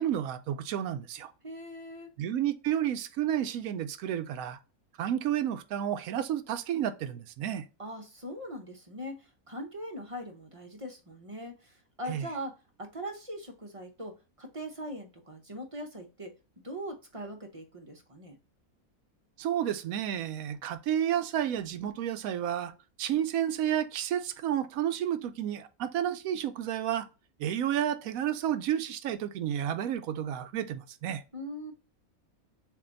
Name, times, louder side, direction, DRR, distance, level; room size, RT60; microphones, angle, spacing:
voice 1, 0.0-1.3 2.2-4.6 5.0-7.7 12.1-12.3 19.4-22.7 23.0-27.1 27.4-31.2, right 10 dB, 75° right, 1.0 m, -31 dB
voice 2, 1.4-2.1 7.8-12.5 12.8-16.4 16.6-18.4 31.3-31.7, equal, 30° right, 0.6 m, -41 dB
7.3 x 2.6 x 2.5 m
omnidirectional pair, 1.5 m